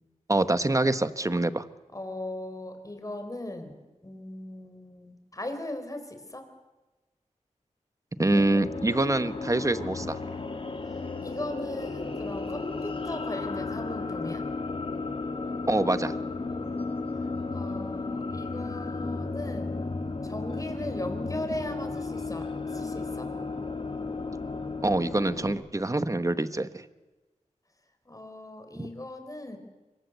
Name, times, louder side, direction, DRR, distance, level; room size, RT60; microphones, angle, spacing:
voice 1, 0.3-1.7 8.2-10.2 15.7-16.2 24.8-26.8 28.8-28.9, right 2 dB, 25° right, 12 dB, 1.3 m, -25 dB
voice 2, 1.9-3.7 4.0-6.5 11.2-14.4 17.5-19.8 20.2-23.3 28.1-29.6, left 1 dB, 25° left, 7 dB, 4.6 m, -38 dB
sound 1, 8.2-25.5, left 3 dB, 45° left, 2.3 m, -34 dB
26.0 x 23.5 x 8.2 m, 1.1 s
wide cardioid pair, 65°, 13 cm